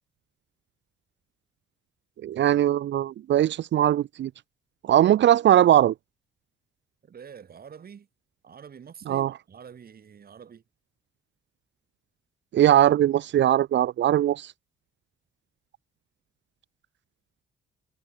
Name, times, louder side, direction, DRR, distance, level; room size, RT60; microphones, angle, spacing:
voice 1, 2.2-4.3 4.9-5.9 9.1-9.3 12.5-14.5, right 12 dB, 65° right, 1.0 m, -20 dB
voice 2, 7.0-8.1 8.4-10.6, right 7 dB, 50° right, 7.3 m, -46 dB
cardioid pair, 90°, 20 cm